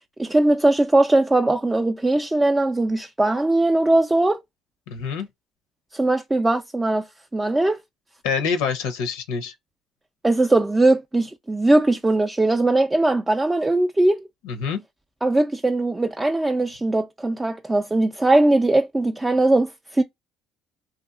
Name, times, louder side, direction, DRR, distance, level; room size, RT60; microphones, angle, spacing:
voice 1, 0.2-4.4 5.9-7.1 7.3-7.8 10.2-14.3 15.2-20.0, right 2 dB, 15° right, 0.3 m, -20 dB
voice 2, 4.9-5.3 8.2-9.5 14.4-14.8, left 6 dB, 90° left, 0.5 m, -26 dB
2.8 x 2.4 x 2.3 m
supercardioid pair, 80°, 0 cm